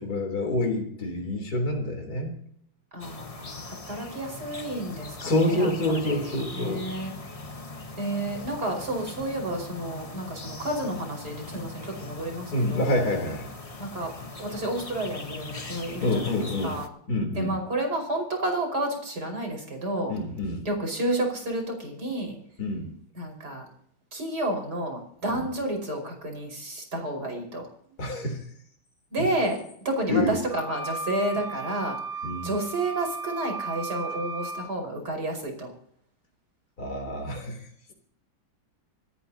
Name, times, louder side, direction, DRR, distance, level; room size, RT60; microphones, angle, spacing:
voice 1, 0.0-2.3 5.2-6.8 8.2-8.3 12.5-13.5 16.0-16.8 17.1-17.6 20.1-20.7 22.6-22.9 25.3-25.5 28.0-28.5 29.2-29.3 30.1-30.4 32.2-32.5 36.8-37.9, left 1 dB, 50° left, 2 dB, 4.2 m, -27 dB
voice 2, 2.9-5.7 6.0-7.1 8.0-13.0 13.8-14.1 14.4-16.4 16.6-16.9 17.3-20.1 20.7-22.4 23.2-23.7 24.1-27.7 29.1-32.0 32.4-35.7, right 1 dB, 50° right, 3 dB, 5.8 m, -31 dB
sound 1, 3.0-16.9, left 3 dB, 20° left, 1.0 m, -40 dB
sound 2, 30.5-34.7, right 3 dB, 90° right, 8.4 m, -35 dB
27.0 x 13.5 x 2.9 m, 0.68 s
omnidirectional pair, 2.1 m